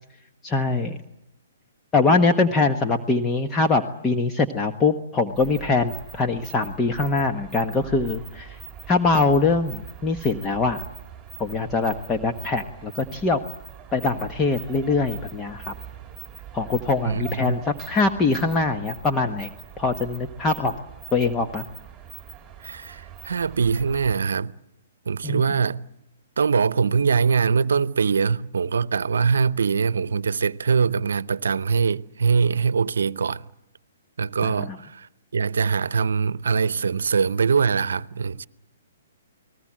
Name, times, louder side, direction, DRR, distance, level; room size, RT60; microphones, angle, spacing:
voice 1, 0.4-1.0 1.9-8.6 8.9-10.8 11.4-13.4 13.9-15.7 16.5-19.5 19.8-20.7 21.1-21.6 25.2-25.4 34.4-34.8, left 3 dB, 15° left, 1.3 m, -23 dB
sound 1, 5.3-24.2, right 9 dB, 15° right, 4.2 m, -42 dB
voice 2, 17.1-17.6 22.6-24.5 25.1-25.9 26.4-33.4 34.2-38.5, right 5 dB, 75° right, 0.8 m, -23 dB
29.5 x 19.5 x 7.6 m
hypercardioid pair, 135°, 0 cm